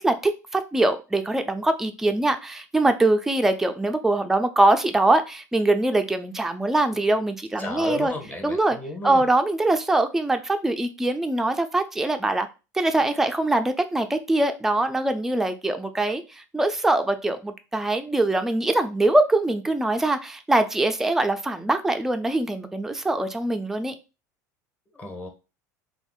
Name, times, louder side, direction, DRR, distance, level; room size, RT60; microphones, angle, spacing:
voice 1, 0.0-8.1 8.4-8.8 9.0-12.5 12.7-23.9, right 2 dB, 5° right, 7 dB, 0.3 m, -23 dB
voice 2, 7.6-9.2 24.9-25.3, left 2 dB, 15° left, 3 dB, 0.9 m, -33 dB
3.4 x 2.0 x 2.3 m, 0.30 s
hypercardioid pair, 80°, 10 cm